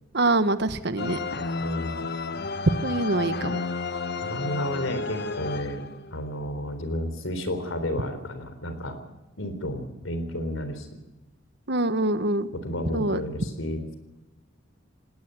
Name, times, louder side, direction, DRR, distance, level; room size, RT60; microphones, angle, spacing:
voice 1, 0.1-1.2 2.8-3.6 11.7-12.5 12.9-13.2, right 2 dB, 60° right, 12 dB, 1.3 m, -24 dB
sound 1, 1.0-6.2, left 4 dB, 55° left, 1.1 m, -32 dB
voice 2, 1.6-2.1 4.2-9.0 9.4-10.9 12.5-14.0, equal, 90° left, 10 dB, 3.9 m, -32 dB
18.5 x 18.0 x 8.1 m, 1.0 s
head